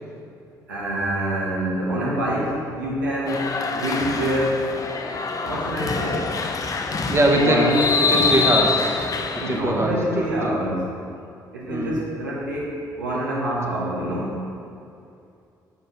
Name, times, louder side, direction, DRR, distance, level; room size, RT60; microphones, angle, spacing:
voice 1, 0.7-4.6 5.4-6.3 7.3-7.8 9.3-10.9 11.5-14.4, right 1 dB, 90° right, -6 dB, 1.2 m, -26 dB
sound 1, 3.3-9.6, left 4 dB, 35° left, 0.6 m, -25 dB
voice 2, 7.1-9.1 9.3-10.5 11.7-12.0, right 1 dB, 25° right, 1 dB, 1.1 m, -22 dB
6.2 x 4.3 x 5.5 m, 2.6 s
hypercardioid pair, 45°, 10 cm